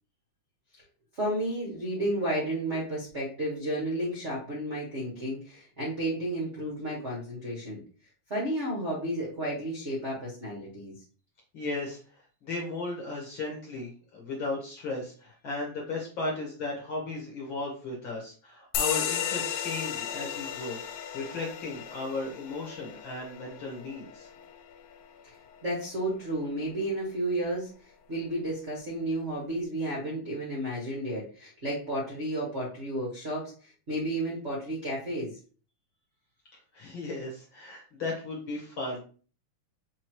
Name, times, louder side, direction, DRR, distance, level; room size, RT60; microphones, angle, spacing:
voice 1, 1.1-7.8 8.3-10.9 25.2-25.3 25.6-27.7 28.1-35.4, right 1 dB, 85° right, -4 dB, 0.6 m, -32 dB
voice 2, 11.5-20.8 21.1-24.3 36.7-39.0, left 2 dB, 60° left, -2 dB, 1.4 m, -36 dB
sound 1, 18.7-25.8, left 9 dB, 80° left, 1.9 m, -35 dB
5.7 x 3.0 x 3.0 m, 0.39 s
omnidirectional pair, 3.5 m